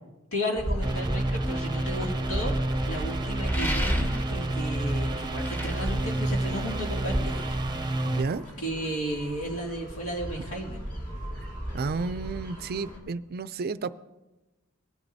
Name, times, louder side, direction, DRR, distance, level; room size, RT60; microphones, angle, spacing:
voice 1, 0.3-2.6 2.8-7.6 8.6-10.8, equal, 85° left, 0 dB, 2.4 m, -33 dB
sound 1, 0.6-13.0, equal, 40° left, 2.5 m, -34 dB
sound 2, 0.8-8.2, right 1 dB, 20° right, 0.7 m, -30 dB
sound 3, 3.5-4.5 5.2-6.9, equal, 10° left, 1.1 m, -35 dB
voice 2, 8.0-8.4 11.7-13.9, right 4 dB, 45° right, 15 dB, 0.4 m, -31 dB
19.5 x 10.5 x 2.7 m, 1.1 s
head